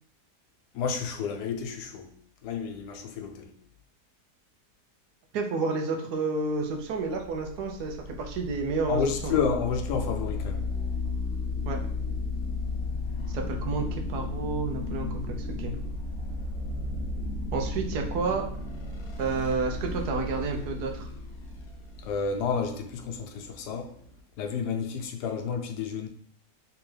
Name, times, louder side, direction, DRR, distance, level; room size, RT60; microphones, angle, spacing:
voice 1, 0.7-2.1 2.4-3.5 8.9-10.7 22.0-23.9 24.4-26.1, left 6 dB, 85° left, 1.2 m, -30 dB
voice 2, 5.3-9.4 11.7-11.8 13.3-15.7 17.5-18.4 19.2-21.1, right 4 dB, 85° right, 1.2 m, -30 dB
sound 1, 6.9-24.2, left 3 dB, 55° left, 0.9 m, -34 dB
3.4 x 3.0 x 3.1 m
omnidirectional pair, 1.7 m